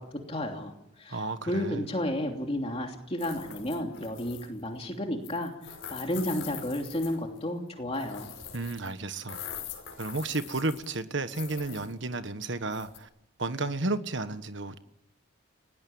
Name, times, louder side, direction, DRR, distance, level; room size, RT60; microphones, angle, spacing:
voice 1, 0.0-8.3, left 1 dB, 30° left, 3.0 m, -32 dB
voice 2, 1.1-1.8 8.5-9.4 10.0-13.1 13.4-14.8, right 2 dB, 60° right, 1.4 m, -32 dB
sound 1, 3.2-4.6 5.2-7.4 7.9-8.9 9.2-11.0 11.3-11.9 12.7-13.0, left 8 dB, 65° left, 5.4 m, -43 dB
29.5 x 19.0 x 8.8 m
head